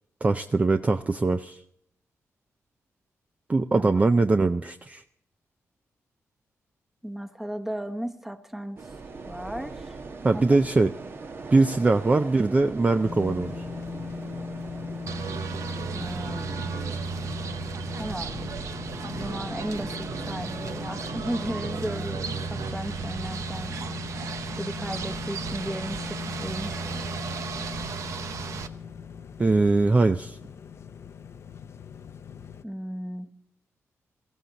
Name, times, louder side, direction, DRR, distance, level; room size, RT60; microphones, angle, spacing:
voice 1, 0.2-1.6 3.5-5.0 10.2-10.9 11.5-13.5 29.4-30.4, right 3 dB, 25° right, 8 dB, 0.5 m, -22 dB
voice 2, 3.8-4.2 7.0-8.8 9.3-10.0 10.3-10.4 15.9-16.7 17.9-18.5 19.0-23.8 24.6-27.1 32.6-33.3, equal, 5° right, 7 dB, 1.1 m, -35 dB
sound 1, 8.8-22.1, right 4 dB, 50° right, 1.2 m, -42 dB
sound 2, 13.0-32.6, left 5 dB, 55° left, 0.7 m, -39 dB
sound 3, 15.1-28.7, right 6 dB, 75° right, 0.9 m, -35 dB
17.5 x 14.5 x 4.1 m, 0.74 s
cardioid pair, 95°, 5 cm